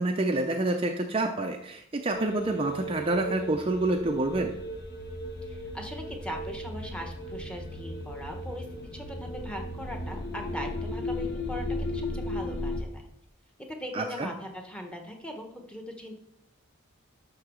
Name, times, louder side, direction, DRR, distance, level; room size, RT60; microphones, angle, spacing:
voice 1, 0.0-4.5 13.9-14.3, right 2 dB, 25° right, 3 dB, 0.5 m, -28 dB
sound 1, 2.1-12.8, left 1 dB, 50° left, 1.2 m, -36 dB
voice 2, 5.5-8.7 8.9-13.1 13.7-16.2, equal, 5° left, 2 dB, 1.0 m, -40 dB
11.5 x 3.9 x 6.2 m, 0.76 s
head